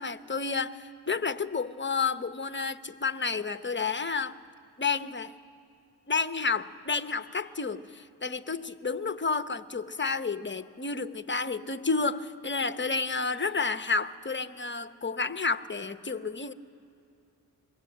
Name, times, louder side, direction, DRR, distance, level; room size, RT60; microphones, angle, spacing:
voice 1, 0.0-4.4 4.8-5.3 6.1-16.5, left 4 dB, 25° left, 11 dB, 0.9 m, -30 dB
22.5 x 16.5 x 8.6 m, 2.6 s
cardioid pair, 55°, 42 cm